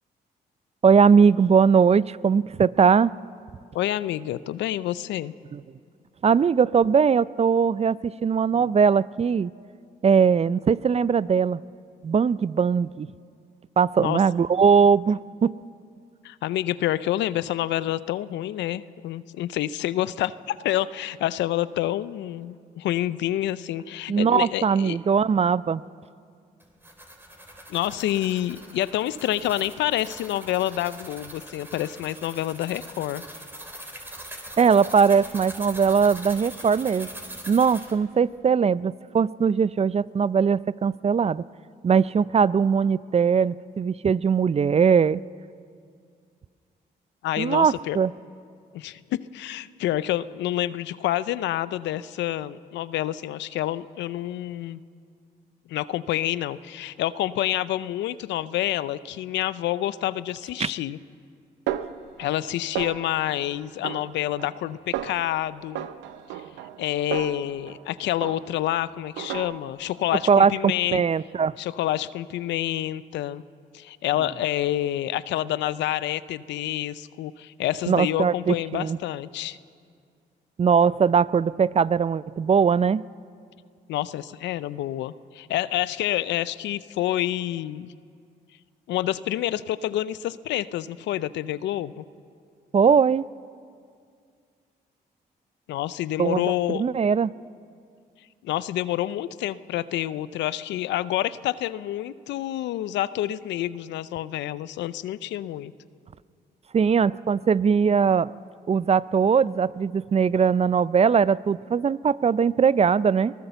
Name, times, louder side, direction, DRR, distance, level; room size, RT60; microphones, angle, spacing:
voice 1, 0.8-3.1 5.5-5.6 6.2-9.5 10.0-11.6 12.0-13.1 13.8-15.5 24.1-25.8 34.6-37.1 37.5-41.4 41.8-45.2 47.4-48.1 60.6-60.7 70.3-71.5 77.9-79.0 80.6-83.0 92.7-93.3 96.2-97.3 106.7-108.3 108.7-113.3, right 6 dB, 35° right, 19 dB, 0.4 m, -20 dB
voice 2, 3.7-5.3 14.0-14.2 16.2-25.0 27.7-33.2 47.2-48.0 48.7-54.8 55.7-61.0 62.2-65.9 66.8-71.0 71.6-73.4 73.7-79.6 83.9-87.9 88.9-92.0 95.7-96.8 98.4-105.7, left 13 dB, 85° left, 16 dB, 0.6 m, -28 dB
sound 1, 26.6-38.0, right 1 dB, 10° right, 3.4 m, -42 dB
Snare drum, 61.7-62.5 62.8-63.3 63.8-64.6 64.9-65.3 65.8-67.9 68.2-68.7 69.2-69.9, right 11 dB, 90° right, 0.7 m, -34 dB
23.0 x 16.5 x 6.9 m, 2.2 s
supercardioid pair, 55°, 18 cm